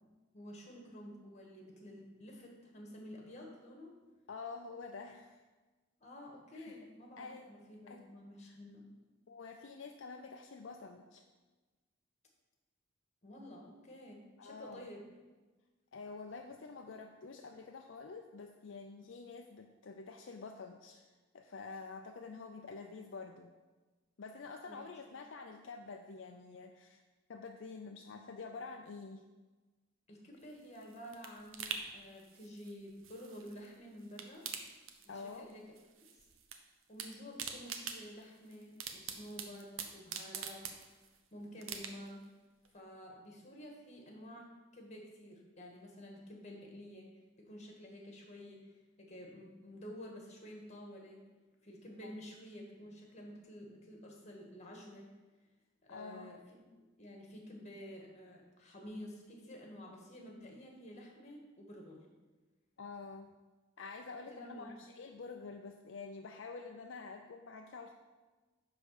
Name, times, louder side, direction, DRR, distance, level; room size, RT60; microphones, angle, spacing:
voice 1, 0.0-3.9 6.0-8.9 13.2-15.0 24.6-24.8 25.1-25.2 30.1-34.5 35.0-35.7 36.9-40.7 41.3-42.2 42.7-47.1 47.4-51.2 51.6-55.1 55.8-56.6 57.0-62.1 64.3-64.7, equal, 35° left, 0 dB, 1.7 m, -51 dB
voice 2, 4.3-5.4 6.5-6.8 7.2-7.5 7.9-8.1 8.4-8.6 9.3-11.2 14.4-14.9 15.9-21.0 21.3-23.5 24.2-27.0 27.3-29.2 35.1-35.5 52.0-52.1 55.9-56.3 62.8-63.3 63.8-67.9, left 4 dB, 65° left, 4 dB, 0.5 m, -48 dB
sound 1, 30.4-33.7 34.0-35.5 35.8-36.6 36.8-41.2 41.6-42.2 42.6-42.7, right 7 dB, 80° right, 0.8 m, -45 dB
10.0 x 3.7 x 6.6 m, 1.3 s
head